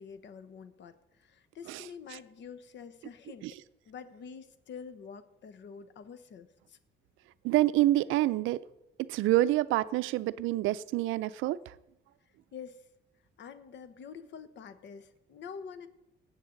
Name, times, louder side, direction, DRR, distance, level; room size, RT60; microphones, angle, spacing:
voice 1, 0.0-3.5 3.8-6.8 12.5-12.8 13.4-15.9, left 6 dB, 65° left, 12 dB, 1.0 m, -47 dB
voice 2, 7.4-8.6 9.0-11.6, right 15 dB, 90° right, 16 dB, 0.4 m, -27 dB
17.5 x 7.9 x 3.9 m, 0.89 s
cardioid pair, 90°, 20 cm